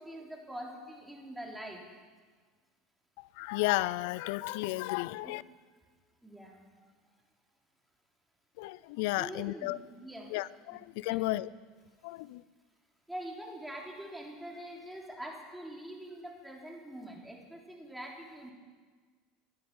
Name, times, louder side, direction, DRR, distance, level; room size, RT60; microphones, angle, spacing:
voice 1, 0.0-1.8 5.2-5.3 6.2-6.7 9.2-10.3 11.1-11.3 13.1-18.5, right 1 dB, 5° right, -1 dB, 3.6 m, -44 dB
voice 2, 3.2-5.4 8.6-9.8 10.3-11.5 12.0-12.4, left 19 dB, 70° left, 20 dB, 0.5 m, -33 dB
18.0 x 11.5 x 5.5 m, 1.5 s
hypercardioid pair, 95°, 0 cm